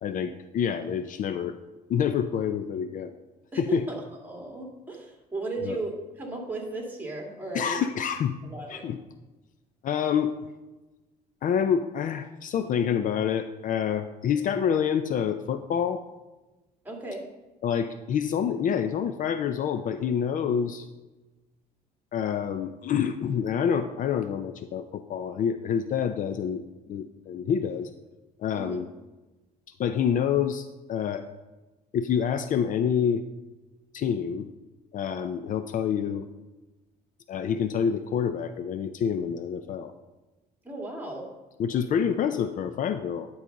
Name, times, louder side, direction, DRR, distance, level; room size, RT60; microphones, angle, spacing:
voice 1, 0.0-1.6 1.9-3.1 3.6-3.8 5.6-5.8 7.5-8.4 8.7-9.0 9.8-10.3 11.4-16.0 17.6-20.9 22.1-26.6 26.9-27.9 28.4-28.9 29.8-31.2 31.9-33.2 33.9-34.5 34.9-36.3 37.3-39.9 41.6-43.3, left 8 dB, 50° left, 9 dB, 0.5 m, -27 dB
voice 2, 3.5-7.8 8.4-8.9 16.8-17.3 28.5-28.8 40.6-41.3, right 2 dB, 10° right, 0 dB, 2.1 m, -35 dB
11.0 x 4.0 x 5.1 m, 1.1 s
cardioid pair, 110°, 17 cm